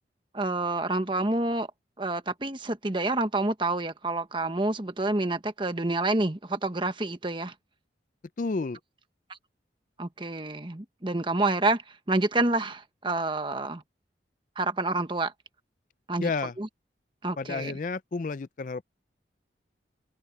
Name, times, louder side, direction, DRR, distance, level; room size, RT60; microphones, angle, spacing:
voice 1, 0.3-1.7 2.0-7.5 10.0-11.8 12.1-13.8 14.6-15.3 16.1-16.3 16.6-16.7 17.2-17.8, right 2 dB, 25° right, 1.2 m, -28 dB
voice 2, 8.4-8.8 16.2-16.5 17.4-18.8, left 4 dB, 45° left, 0.4 m, -31 dB
open air
head